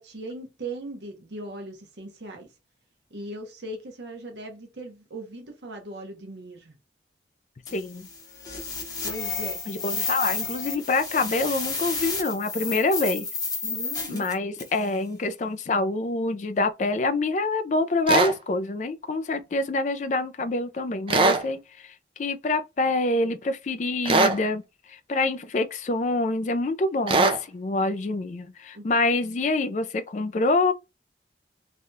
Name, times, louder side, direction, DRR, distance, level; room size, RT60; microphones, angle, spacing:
voice 1, 0.0-2.5 3.1-6.7 9.0-9.6 13.6-14.2 28.7-28.8, right 1 dB, 75° right, 0.8 m, -38 dB
voice 2, 7.7-8.1 9.7-13.3 14.1-30.7, left 2 dB, 40° left, 0.3 m, -26 dB
sound 1, 7.7-14.9, left 4 dB, 20° left, 0.8 m, -31 dB
sound 2, 18.1-18.3 21.1-21.4 24.1-24.4 27.1-27.4, right 3 dB, 30° right, 0.4 m, -20 dB
3.3 x 2.3 x 2.6 m
head